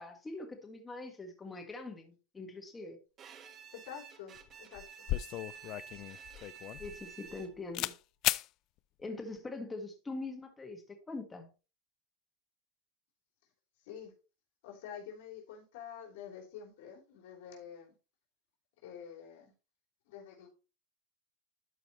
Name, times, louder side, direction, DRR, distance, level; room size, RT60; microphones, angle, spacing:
voice 1, 0.0-3.0 6.8-7.9 9.0-11.5, left 3 dB, 15° left, 4 dB, 1.5 m, -43 dB
Bowed string instrument, 3.2-7.8, right 7 dB, 30° right, 1.2 m, -51 dB
voice 2, 3.7-5.1 13.8-14.1 14.6-17.9 18.8-19.5 20.1-20.5, left 8 dB, 75° left, 1 dB, 3.3 m, -48 dB
sound 1, 4.4-4.5 4.8-7.4 7.7-8.0 8.2-8.5, left 16 dB, 45° left, 0.4 m, -35 dB
12.0 x 5.1 x 3.0 m, 0.32 s
supercardioid pair, 145°, 0 cm